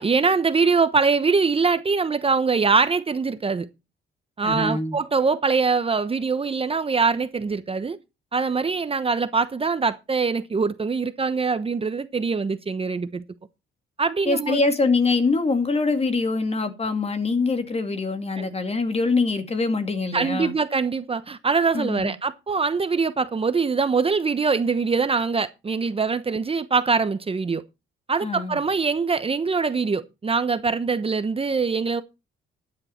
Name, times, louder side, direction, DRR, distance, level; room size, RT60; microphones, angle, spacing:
voice 1, 0.0-3.7 4.4-8.0 8.3-13.2 14.0-14.6 18.4-18.5 20.1-27.6 28.1-32.0, right 4 dB, 30° right, 1.0 m, -23 dB
voice 2, 4.4-5.0 14.3-20.5 21.7-22.1 28.2-28.6, left 3 dB, 30° left, 2.1 m, -24 dB
13.0 x 9.8 x 4.4 m
cardioid pair, 90°, 20 cm